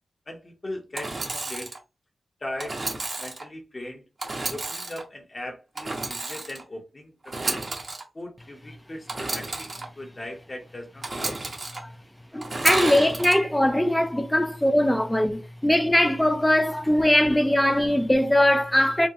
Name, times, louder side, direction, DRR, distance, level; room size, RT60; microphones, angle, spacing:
voice 1, 0.3-1.7 2.4-2.8 3.2-4.1 4.5-7.7 8.1-11.4, left 1 dB, 35° left, 0.8 m, -39 dB
Engine / Sawing, 0.9-1.8 2.6-3.4 4.2-5.0 5.8-6.6 7.2-8.0 9.1-9.8 11.0-11.8 12.4-13.4, right 2 dB, 50° right, 1.0 m, -31 dB
voice 2, 12.3-19.1, left 1 dB, 10° left, 0.4 m, -21 dB
3.5 x 2.1 x 2.8 m
cardioid pair, 65°, 0 cm